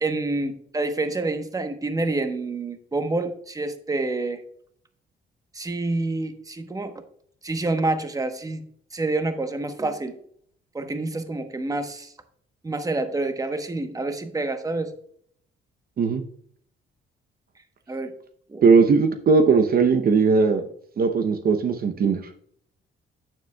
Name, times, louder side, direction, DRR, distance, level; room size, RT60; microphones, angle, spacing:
voice 1, 0.0-4.4 5.5-6.9 7.4-8.6 8.9-10.2 10.7-12.1 12.6-14.9 17.9-18.1 18.5-18.7, right 2 dB, 15° right, 8 dB, 1.0 m, -27 dB
voice 2, 18.6-20.6 21.0-22.2, right 4 dB, 50° right, 7 dB, 0.7 m, -18 dB
9.0 x 7.0 x 2.3 m, 0.63 s
cardioid pair, 90°, 20 cm